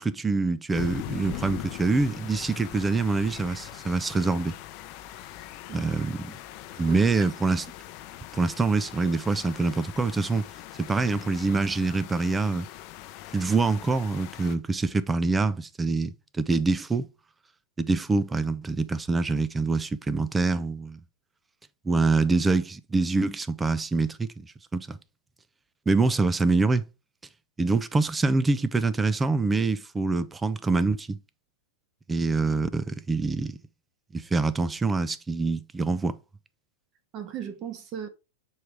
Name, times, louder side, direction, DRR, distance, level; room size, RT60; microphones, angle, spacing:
voice 1, 0.0-4.6 5.7-6.2 6.8-7.6 8.3-10.5 10.8-12.7 13.3-17.1 17.8-21.0 21.8-25.0 25.9-26.8 27.6-31.2 32.1-33.6 34.1-36.2, right 3 dB, 10° right, 0.4 m, -25 dB
sound 1, 0.7-14.6, left 13 dB, 40° left, 0.6 m, -41 dB
voice 2, 6.7-7.0 37.1-38.1, right 9 dB, 30° right, 1.2 m, -37 dB
6.3 x 4.6 x 3.4 m
supercardioid pair, 150°, 0 cm